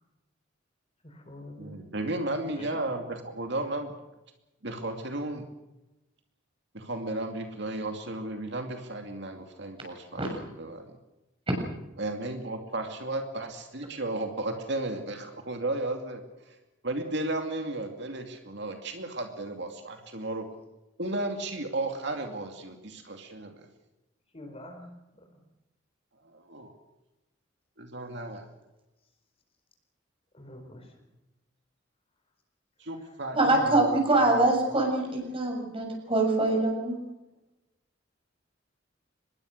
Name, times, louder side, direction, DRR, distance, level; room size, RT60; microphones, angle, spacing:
voice 1, 1.0-1.8 2.6-2.8 24.3-25.3 30.3-30.9, left 1 dB, 30° left, 5 dB, 4.5 m, -45 dB
voice 2, 1.6-3.9 4.6-5.5 6.7-10.2 10.6-11.0 12.0-16.2 16.5-16.6 16.8-20.5 21.0-23.7 26.2-26.7 27.8-28.5 32.8-34.4, right 2 dB, 60° right, 4 dB, 2.5 m, -34 dB
voice 3, 33.4-37.0, right 2 dB, 30° right, 2 dB, 7.2 m, -24 dB
25.0 x 21.0 x 6.6 m, 0.98 s
head